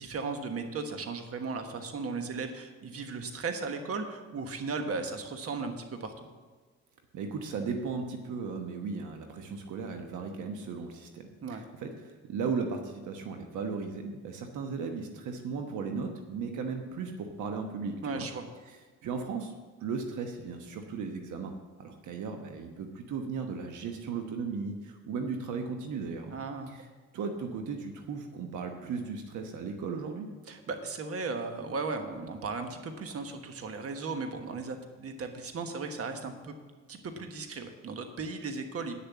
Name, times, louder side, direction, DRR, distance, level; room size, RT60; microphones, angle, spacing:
voice 1, 0.0-6.3 11.4-11.6 18.0-18.5 26.3-26.8 30.5-36.5 36.9-38.9, right 4 dB, 50° right, 6 dB, 1.3 m, -36 dB
voice 2, 7.1-18.3 18.7-19.5 19.8-21.5 21.8-26.4 26.7-26.8 27.1-30.3, right 5 dB, 80° right, 5 dB, 1.1 m, -36 dB
9.5 x 6.9 x 7.3 m, 1.4 s
cardioid pair, 90°, 30 cm